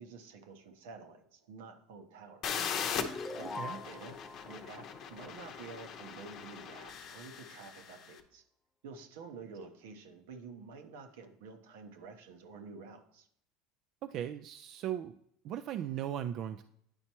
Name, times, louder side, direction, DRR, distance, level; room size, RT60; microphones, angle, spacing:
voice 1, 0.0-2.6 3.0-8.4 8.8-13.3, right 4 dB, 85° right, 6 dB, 0.9 m, -50 dB
sound 1, 2.4-8.1, left 7 dB, 50° left, 0.7 m, -40 dB
sound 2, 3.0-6.2, left 3 dB, 15° left, 0.4 m, -45 dB
voice 2, 14.0-15.2 15.4-16.6, right 10 dB, 55° right, 9 dB, 0.3 m, -37 dB
9.6 x 4.3 x 2.9 m, 0.70 s
supercardioid pair, 110°, 0 cm